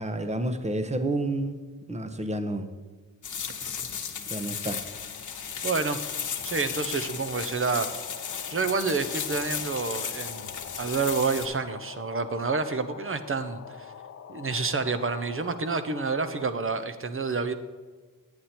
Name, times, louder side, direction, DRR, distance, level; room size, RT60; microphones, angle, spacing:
voice 1, 0.0-1.6 1.9-2.7 4.3-4.8, right 1 dB, 20° right, 9 dB, 0.9 m, -29 dB
sound 1, 3.2-11.5, left 7 dB, 60° left, 1.1 m, -35 dB
sound 2, 4.8-16.5, left 7 dB, 45° left, 0.6 m, -45 dB
voice 2, 5.6-6.0 6.4-7.9 8.5-10.5 10.8-13.9 14.3-17.5, right 4 dB, 40° right, 9 dB, 0.8 m, -28 dB
9.6 x 9.2 x 4.3 m, 1.4 s
cardioid pair, 80°, 34 cm